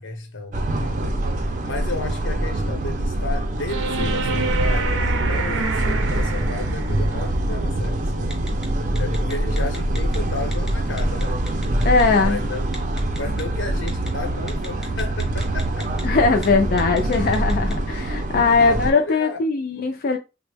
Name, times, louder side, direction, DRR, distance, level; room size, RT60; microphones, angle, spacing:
voice 1, 0.0-8.4 8.9-11.5 12.2-12.7 13.1-15.9 17.0-17.5 18.6-19.9, left 3 dB, 90° left, 0.8 m, -34 dB
sound 1, 0.5-18.9, right 1 dB, 40° right, 0.5 m, -24 dB
sound 2, 3.7-7.0 9.7-9.8, right 3 dB, 90° right, 0.6 m, -26 dB
Telephone, 8.3-8.7 8.9-10.2 10.5-10.7 11.0-12.0 12.7-13.4 13.9-14.1 14.5-16.0 16.3-16.5 16.8-17.7, right 1 dB, ahead, 0.7 m, -37 dB
voice 2, 11.8-12.4 16.0-20.2, left 4 dB, 50° left, 0.4 m, -20 dB
3.6 x 2.0 x 3.3 m
head